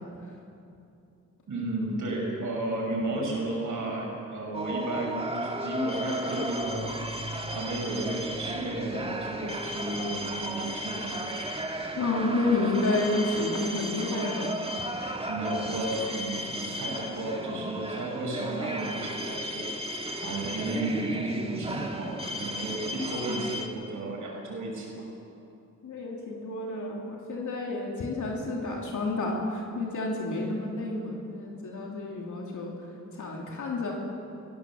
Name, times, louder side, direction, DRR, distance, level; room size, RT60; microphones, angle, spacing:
voice 1, 1.5-7.0 7.5-11.5 15.3-19.6 20.2-24.9, right 1 dB, 90° right, -1 dB, 6.3 m, -33 dB
sound 1, 4.5-23.7, right 1 dB, 20° right, 1.8 m, -34 dB
voice 2, 12.0-14.5 17.5-17.6 25.8-32.7 33.1-33.9, left 2 dB, 80° left, -1 dB, 3.0 m, -30 dB
22.5 x 16.5 x 7.4 m, 2.6 s
wide cardioid pair, 90°, 30 cm